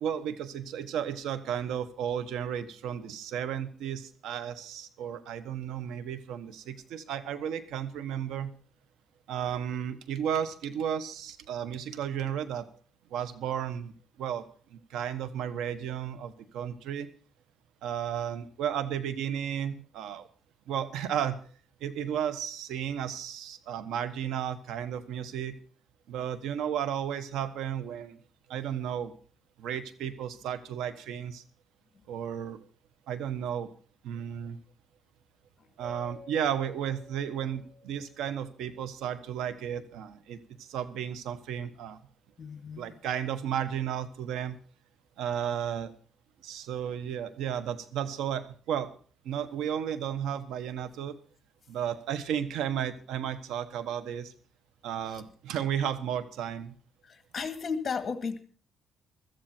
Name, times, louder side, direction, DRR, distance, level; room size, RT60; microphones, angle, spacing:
voice 1, 0.0-8.5 9.3-12.7 13.1-13.9 14.2-14.4 14.7-17.1 17.8-20.3 20.7-21.4 21.8-25.6 26.1-28.2 28.5-29.1 29.6-31.4 32.1-32.6 33.1-33.7 34.0-34.6 35.8-42.0 42.8-44.6 45.2-45.9 46.4-48.9 49.2-51.1 51.7-54.3 54.8-56.7, right 9 dB, 85° right, 13 dB, 1.3 m, -33 dB
Mallet percussion, 35.8-38.8, left 2 dB, 60° right, 7.2 m, -51 dB
voice 2, 42.4-42.9 57.1-58.4, left 5 dB, 40° left, 9 dB, 2.0 m, -34 dB
16.0 x 14.0 x 4.5 m, 0.43 s
cardioid pair, 90°, 0 cm